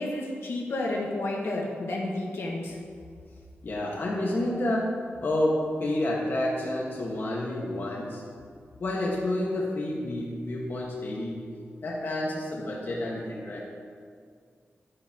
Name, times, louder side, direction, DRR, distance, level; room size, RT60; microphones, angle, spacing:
voice 1, 0.0-2.8, left 2 dB, 75° left, -3 dB, 1.6 m, -31 dB
voice 2, 3.6-8.2 8.8-11.4 11.8-13.6, left 1 dB, 55° left, -3 dB, 1.5 m, -29 dB
12.0 x 9.8 x 3.0 m, 2.1 s
wide cardioid pair, 155°, 4 cm